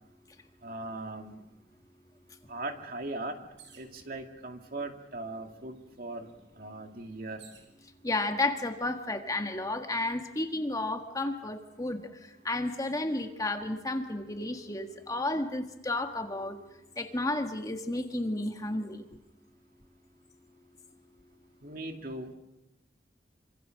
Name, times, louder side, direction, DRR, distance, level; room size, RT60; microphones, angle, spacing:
voice 1, 0.6-1.4 2.5-3.4 3.8-6.3 6.6-7.5 21.6-22.3, right 2 dB, 50° right, 4 dB, 2.5 m, -39 dB
sound 1, 3.6-4.0 4.9-5.0 5.3-7.7 8.5-9.0, right 6 dB, 85° right, 6.6 m, -57 dB
voice 2, 8.0-12.0 12.4-16.6 17.0-19.0, left 2 dB, 20° left, 5 dB, 1.6 m, -32 dB
27.0 x 26.0 x 6.5 m, 0.99 s
head